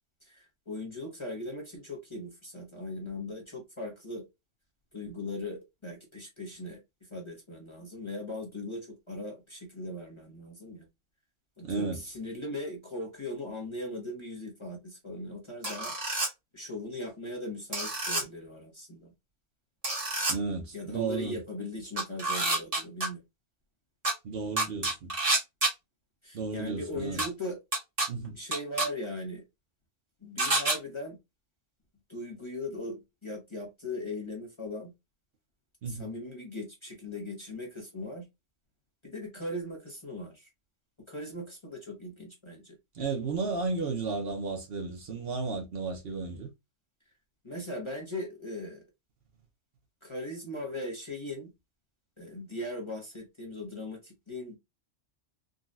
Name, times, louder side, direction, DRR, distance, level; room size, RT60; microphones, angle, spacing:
voice 1, 0.2-4.2 4.9-10.9 11.6-16.2 16.5-19.1 20.7-23.2 26.2-27.6 28.3-29.4 30.2-31.2 32.1-34.9 35.9-38.3 39.0-40.5 41.1-42.8 47.4-48.8 50.0-51.5 52.2-54.6, left 1 dB, 30° left, 0.8 m, -39 dB
voice 2, 11.6-12.0 20.3-21.4 24.2-25.1 26.3-27.2 28.1-28.4 35.8-36.1 42.9-46.5, right 4 dB, 60° right, 0.9 m, -33 dB
sound 1, 15.6-16.3 17.7-18.2 19.8-20.3 22.0-23.1 24.0-24.1 24.6-25.7 27.2-27.3 27.7-28.1 28.5-28.9 30.4-30.8, right 2 dB, 30° right, 1.3 m, -28 dB
3.9 x 2.2 x 2.4 m
omnidirectional pair, 1.3 m